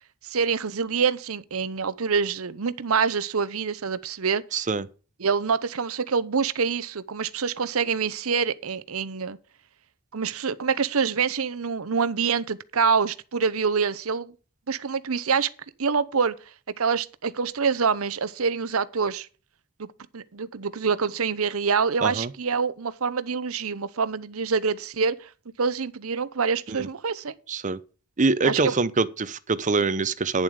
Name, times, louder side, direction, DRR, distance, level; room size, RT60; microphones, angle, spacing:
voice 1, 0.2-4.4 5.2-9.4 10.1-14.3 14.7-15.5 15.8-16.4 16.8-19.3 19.8-25.3 25.6-27.3 28.4-28.7, right 5 dB, 75° right, 0.8 m, -26 dB
voice 2, 4.5-4.9 22.0-22.3 26.7-26.9 27.5-27.8 28.2-30.4, right 4 dB, 35° right, 0.7 m, -24 dB
10.5 x 7.4 x 4.8 m
head